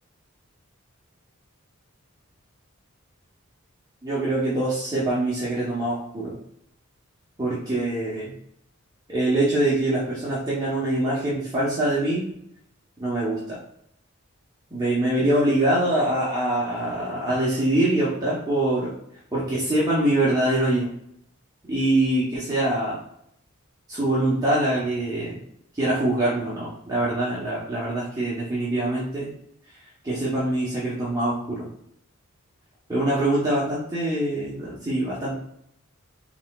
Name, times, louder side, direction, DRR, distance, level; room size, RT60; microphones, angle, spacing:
voice 1, 4.0-6.4 7.4-8.3 9.1-12.3 13.0-13.6 14.7-18.9 19.3-20.9 21.7-23.0 23.9-25.4 25.8-29.3 30.0-31.7 32.9-35.3, right 1 dB, 15° right, -8 dB, 0.9 m, -24 dB
4.1 x 3.8 x 2.4 m, 0.73 s
head